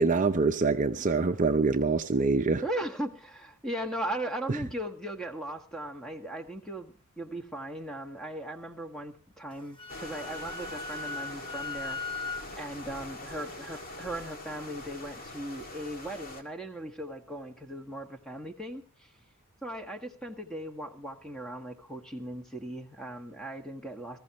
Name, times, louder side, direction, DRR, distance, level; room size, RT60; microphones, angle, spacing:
voice 1, 0.0-2.6, right 3 dB, 35° right, 0.7 m, -25 dB
voice 2, 2.6-19.1 19.6-24.2, right 1 dB, 5° left, 1.6 m, -38 dB
Wind instrument woodwind instrument, 9.5-12.5, left 3 dB, 25° left, 1.3 m, -38 dB
sound 1, 9.9-16.4, left 2 dB, 40° left, 2.1 m, -43 dB
20.5 x 15.0 x 3.0 m
head